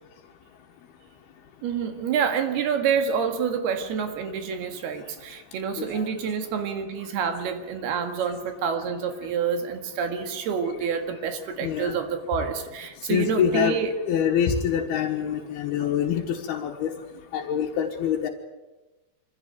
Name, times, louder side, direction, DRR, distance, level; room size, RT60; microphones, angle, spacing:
voice 1, 1.6-13.9, right 6 dB, 80° right, 7 dB, 3.8 m, -28 dB
voice 2, 11.6-12.0 13.1-13.8 14.1-16.9 17.3-18.3, left 8 dB, 80° left, -1 dB, 3.3 m, -25 dB
24.5 x 16.0 x 9.3 m, 1.1 s
omnidirectional pair, 4.5 m